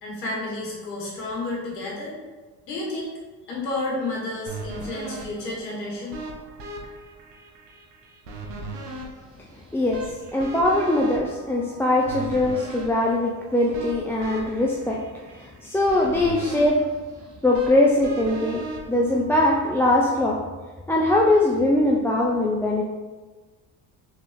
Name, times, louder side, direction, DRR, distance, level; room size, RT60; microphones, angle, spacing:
voice 1, 0.0-2.1 2.6-3.1 3.4-6.2, left 2 dB, 85° left, -4 dB, 1.4 m, -31 dB
sound 1, 4.5-19.7, right 2 dB, 80° right, 0.9 m, -38 dB
voice 2, 9.7-17.0 17.4-20.5 20.9-22.8, left 1 dB, 5° left, -2 dB, 0.3 m, -22 dB
3.9 x 3.5 x 3.4 m, 1.3 s
hypercardioid pair, 55°, 47 cm